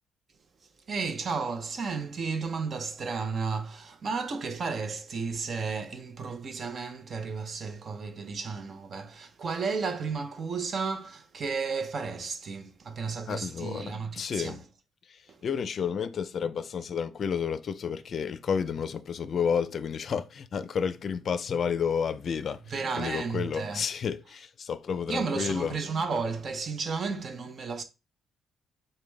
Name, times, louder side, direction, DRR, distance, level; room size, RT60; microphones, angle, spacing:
voice 1, 0.6-14.6 15.3-15.4 22.6-23.9 25.1-27.8, right 4 dB, 45° right, 0.6 m, -33 dB
voice 2, 13.3-13.8 14.1-14.6 15.1-22.6 23.0-25.8, left 7 dB, 55° left, 0.4 m, -31 dB
5.1 x 2.1 x 3.3 m
cardioid pair, 90°, 0 cm